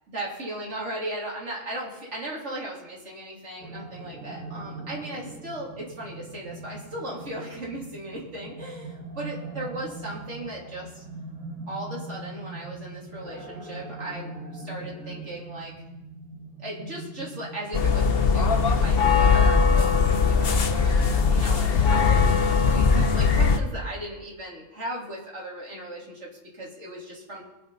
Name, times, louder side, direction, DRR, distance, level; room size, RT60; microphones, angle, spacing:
voice 1, 0.1-11.0 11.7-15.7 16.6-27.4, right 1 dB, 65° right, -5 dB, 3.6 m, -37 dB
sound 1, 3.6-21.3, right 2 dB, 80° right, 2.1 m, -41 dB
sound 2, 17.7-23.6, left 5 dB, 50° left, 1.1 m, -20 dB
23.0 x 9.4 x 4.1 m, 0.96 s
omnidirectional pair, 1.3 m